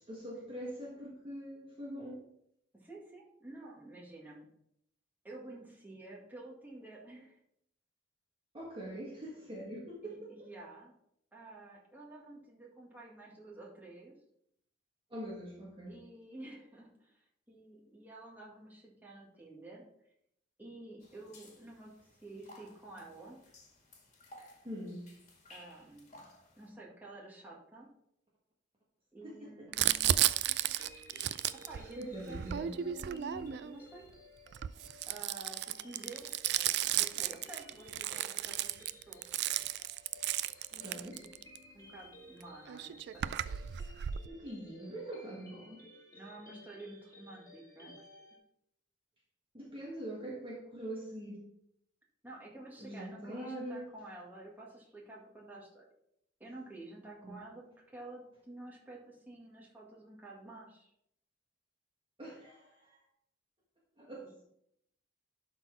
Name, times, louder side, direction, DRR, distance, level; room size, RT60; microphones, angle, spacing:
voice 1, 0.1-2.2 8.5-10.5 15.1-16.0 24.6-25.0 29.2-29.9 32.0-32.7 40.7-41.2 44.2-45.8 49.5-51.5 52.8-53.9 57.2-57.4 62.2-63.0 64.0-64.3, right 1 dB, 30° right, -4 dB, 1.4 m, -43 dB
voice 2, 2.7-4.5 5.2-7.4 10.0-10.9 11.3-14.2 15.9-19.8 20.6-21.9 22.2-23.4 25.5-26.2 26.6-27.9 29.1-30.2 31.5-34.1 35.1-39.2 41.2-41.3 41.7-43.3 45.4-45.5 46.1-48.0 52.2-55.8 56.4-60.9 64.2-64.4, right 2 dB, 10° right, -4 dB, 2.0 m, -50 dB
sound 1, 21.0-26.7, left 1 dB, 40° left, 2.1 m, -58 dB
Crumpling crinkling, 29.7-33.8 34.5-41.6 42.4-42.5 42.7-44.3, right 12 dB, 65° right, 0.3 m, -33 dB
sound 2, 30.1-48.4, left 1 dB, 20° left, 2.3 m, -57 dB
11.5 x 4.1 x 4.3 m, 0.74 s
head